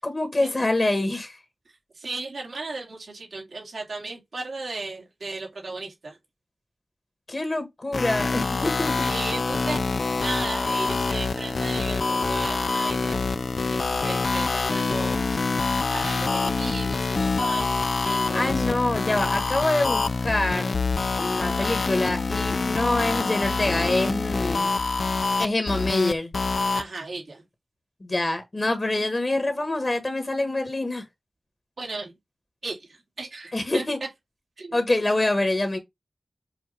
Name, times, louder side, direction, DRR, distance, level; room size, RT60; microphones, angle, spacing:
voice 1, 0.0-1.4 7.3-8.9 18.3-20.8 21.2-24.7 25.4-26.3 28.0-31.0 33.5-34.0 34.7-35.8, left 2 dB, 40° left, 1.6 m, -25 dB
voice 2, 1.7-6.2 9.0-13.2 13.5-15.4 15.9-17.7 18.0-18.8 21.4-21.8 26.7-27.4 31.8-32.1 32.6-33.8 34.6-34.8, right 3 dB, 75° right, 2.4 m, -36 dB
sound 1, 7.9-26.8, left 4 dB, 75° left, 0.6 m, -26 dB
7.2 x 2.6 x 5.0 m
wide cardioid pair, 60°, 0 cm